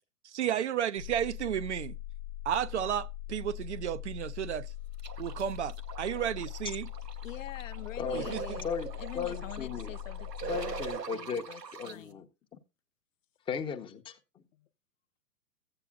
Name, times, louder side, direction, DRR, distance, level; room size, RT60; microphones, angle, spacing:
voice 1, 0.2-2.0 2.5-4.7 5.2-6.9 8.1-8.4, right 10 dB, 50° right, 0.6 m, -32 dB
sound 1, 1.0-11.0, left 13 dB, 70° left, 1.0 m, -41 dB
sound 2, 5.0-11.9, right 7 dB, 90° right, 1.2 m, -42 dB
voice 2, 7.2-10.8 11.1-12.3 14.5-14.7, left 11 dB, 55° left, 0.7 m, -46 dB
voice 3, 8.0-8.3 8.6-8.9 9.1-9.9 10.5-11.4 11.8-12.3 12.5-12.6 13.5-14.2, left 6 dB, 10° left, 0.8 m, -36 dB
15.0 x 8.7 x 2.3 m
figure-of-eight pair, 120°, 47 cm